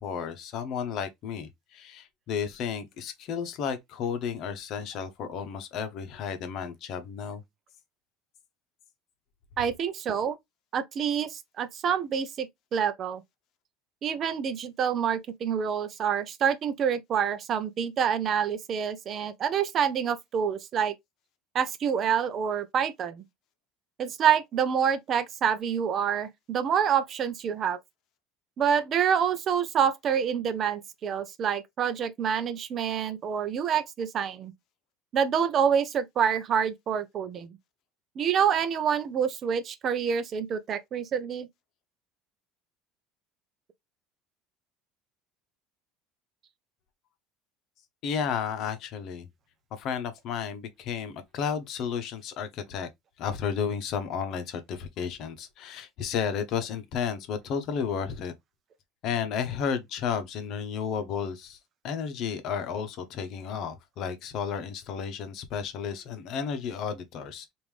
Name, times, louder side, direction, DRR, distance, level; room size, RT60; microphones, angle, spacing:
voice 1, 0.0-7.4 48.0-49.3 49.7-52.9 53.2-58.3 59.0-61.6 61.8-67.5, left 7 dB, 60° left, 0.8 m, -32 dB
voice 2, 9.6-10.4 10.7-13.2 14.0-20.9 21.5-23.2 24.0-27.8 28.6-34.5 35.1-37.6 38.2-41.5, right 8 dB, 45° right, 0.5 m, -27 dB
3.5 x 2.6 x 3.1 m
supercardioid pair, 105°, 0 cm